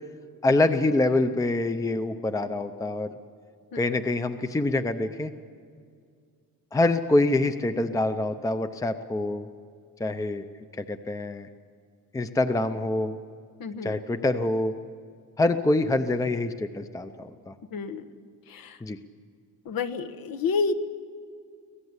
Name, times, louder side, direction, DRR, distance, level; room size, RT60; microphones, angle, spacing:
voice 1, 0.4-3.2 3.7-5.3 6.7-9.5 10.0-10.5 10.7-11.5 12.1-13.2 13.8-14.7 15.4-17.5 18.8-19.0, left 2 dB, 10° left, 9 dB, 0.6 m, -25 dB
voice 2, 13.6-13.9 17.7-18.0 18.5-18.8 19.6-20.7, left 4 dB, 75° left, 8 dB, 1.3 m, -29 dB
25.5 x 17.5 x 8.1 m, 2.2 s
wide cardioid pair, 170°, 35 cm